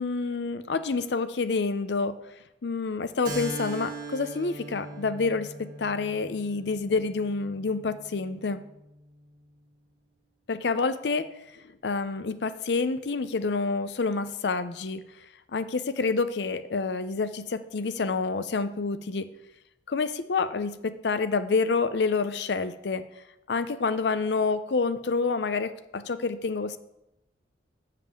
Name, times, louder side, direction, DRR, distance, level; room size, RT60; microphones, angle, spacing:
voice 1, 0.0-2.1 2.6-8.6 10.5-11.3 11.5-15.0 15.5-19.3 19.9-23.0 23.5-26.8, left 4 dB, 70° left, 12 dB, 0.5 m, -28 dB
Keyboard (musical), 3.2-8.4, right 2 dB, 50° right, 1.4 m, -40 dB
6.9 x 5.8 x 7.4 m, 0.87 s
head